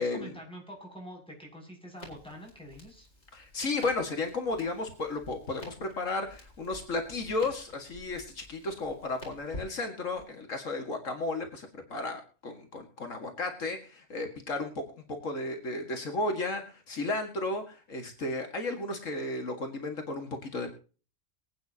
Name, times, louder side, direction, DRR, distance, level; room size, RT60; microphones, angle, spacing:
voice 1, 0.0-3.1, equal, 5° left, -1 dB, 6.9 m, -46 dB
Crackle, 2.0-10.3, left 1 dB, 60° left, 4.9 m, -50 dB
voice 2, 3.3-20.7, left 2 dB, 80° left, 4 dB, 2.3 m, -34 dB
23.5 x 9.1 x 2.9 m, 0.37 s
omnidirectional pair, 1.3 m